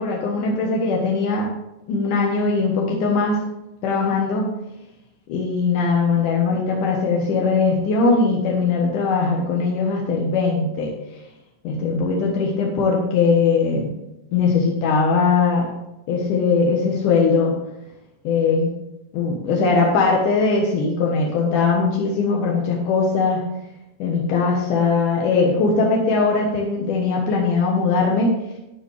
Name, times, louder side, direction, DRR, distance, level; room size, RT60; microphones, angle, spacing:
voice 1, 0.0-1.5 1.9-3.4 3.8-4.5 5.3-10.9 11.6-13.9 14.3-15.7 16.1-17.5 18.2-18.7 19.1-23.4 24.0-28.3, left 4 dB, 65° left, -1 dB, 2.1 m, -20 dB
12.0 x 9.0 x 3.4 m, 0.91 s
omnidirectional pair, 5.3 m